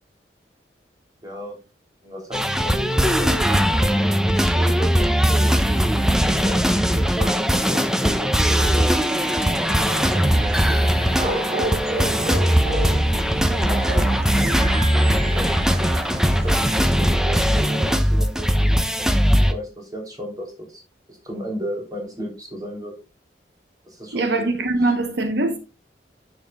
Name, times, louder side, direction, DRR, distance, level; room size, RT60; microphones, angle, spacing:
voice 1, 1.2-1.6 2.0-3.3 3.8-5.6 6.3-9.0 9.8-12.3 13.3-14.6 14.9-15.7 16.1-18.8 19.3-20.8 21.1-23.0 23.9-24.9, right 1 dB, 20° right, 3.4 m, -34 dB
sound 1, 2.3-19.5, equal, 5° right, 0.6 m, -20 dB
sound 2, 8.5-16.8, right 1 dB, 40° right, 2.4 m, -32 dB
voice 2, 24.1-25.6, right 2 dB, 75° right, 1.1 m, -22 dB
11.0 x 8.0 x 2.4 m
head